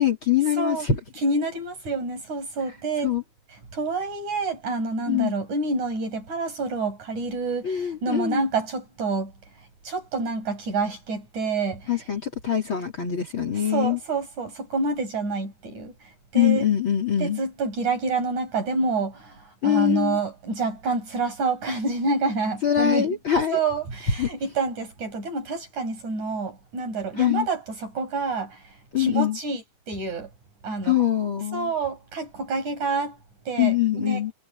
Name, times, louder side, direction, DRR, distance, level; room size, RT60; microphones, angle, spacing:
voice 1, 0.0-1.0 3.0-3.2 5.1-5.3 7.6-8.4 11.9-14.0 16.4-17.4 19.6-20.2 22.6-23.6 24.2-24.3 27.2-27.5 28.9-29.4 30.8-31.7 33.6-34.3, left 10 dB, 40° left, 3.7 m, -23 dB
voice 2, 0.6-0.9 1.2-3.1 3.7-9.3 9.8-11.9 13.5-16.7 17.2-23.2 23.5-30.3 30.6-31.0 31.5-33.2 33.5-34.2, right 3 dB, 60° right, 7.6 m, -28 dB
omnidirectional pair, 3.8 m